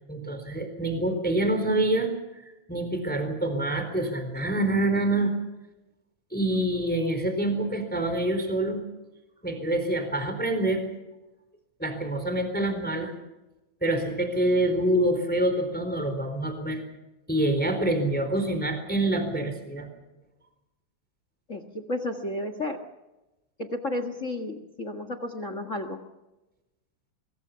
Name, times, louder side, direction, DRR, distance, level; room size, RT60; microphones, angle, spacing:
voice 1, 0.1-2.1 2.4-5.3 6.3-8.8 9.4-10.8 11.8-13.1 13.8-16.8 17.3-19.9, right 1 dB, 5° left, 7 dB, 3.7 m, -26 dB
voice 2, 21.5-22.8 23.6-26.0, left 1 dB, 45° left, 10 dB, 1.0 m, -32 dB
24.5 x 22.5 x 5.8 m, 1.0 s
omnidirectional pair, 4.1 m